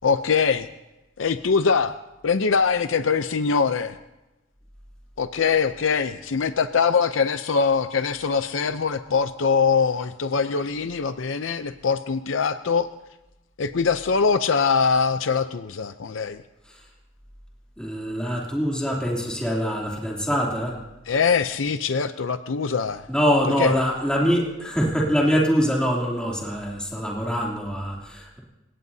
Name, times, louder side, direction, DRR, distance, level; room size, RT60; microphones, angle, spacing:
voice 1, 0.0-0.7 1.2-2.0 2.2-4.0 5.2-12.9 13.6-16.4 21.1-23.0 23.6-23.8, left 5 dB, 85° left, 10 dB, 0.6 m, -22 dB
voice 2, 17.8-20.8 23.1-28.4, equal, 5° left, -3 dB, 2.9 m, -24 dB
28.0 x 17.5 x 2.8 m, 0.99 s
head